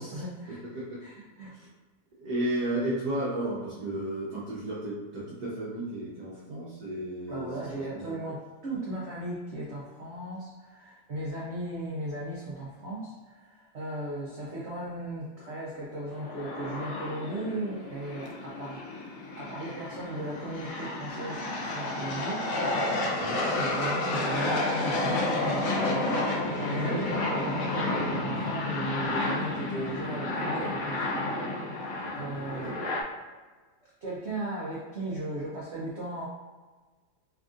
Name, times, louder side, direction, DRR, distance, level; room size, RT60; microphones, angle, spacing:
voice 1, 0.0-0.6 1.0-1.5 7.3-18.8 19.4-31.3 31.7-32.8 33.3-33.4 34.0-36.3, right 1 dB, 75° right, -6 dB, 0.6 m, -37 dB
voice 2, 2.2-7.5 7.9-8.2 23.1-23.3 26.8-27.1 31.9-32.4, right 1 dB, 60° right, -7 dB, 1.2 m, -33 dB
sound 1, 16.1-33.0, left 2 dB, 70° left, 0.8 m, -31 dB
3.7 x 3.4 x 2.4 m, 1.3 s
omnidirectional pair, 2.1 m